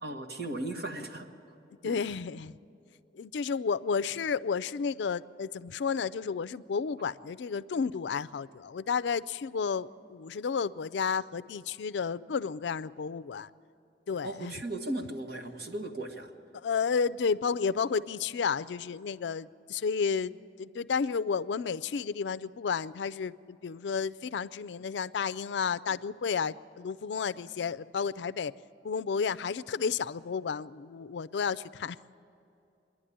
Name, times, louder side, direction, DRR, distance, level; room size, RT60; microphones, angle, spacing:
voice 1, 0.0-1.3 1.8-2.1 14.2-16.3, right 1 dB, 60° right, 3 dB, 1.6 m, -37 dB
voice 2, 1.8-2.6 3.1-13.5 14.1-14.5 16.5-28.5 28.8-32.0, left 6 dB, 75° left, 14 dB, 0.4 m, -32 dB
26.0 x 11.0 x 10.0 m, 2.7 s
head